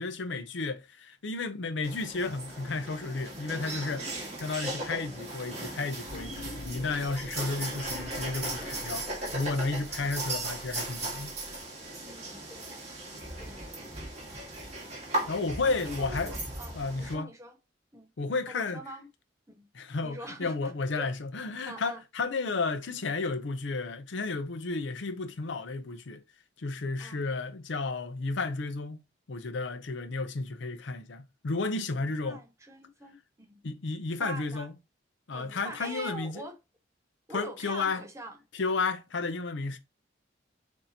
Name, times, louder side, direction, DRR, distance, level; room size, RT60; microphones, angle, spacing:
voice 1, 0.0-9.1 9.3-11.3 15.3-16.3 16.7-17.3 18.2-18.8 19.7-26.2 26.6-29.0 29.3-32.4 33.6-34.7 35.3-36.4 37.3-38.0 38.5-39.8, left 3 dB, 80° left, 0.6 m, -32 dB
sound 1, 1.8-17.1, right 2 dB, 35° right, 1.6 m, -37 dB
voice 2, 4.9-5.2 8.8-9.8 12.0-13.1 13.4-13.9 15.7-17.6 17.9-18.1 18.5-19.1 19.5-19.7 20.0-21.1 21.7-22.0 27.0-27.2 32.0-33.6 34.2-34.7 35.3-36.6 37.3-38.4, right 1 dB, 15° right, 0.6 m, -44 dB
sound 2, 6.1-11.6, left 1 dB, 50° left, 1.0 m, -46 dB
6.4 x 2.7 x 2.8 m
head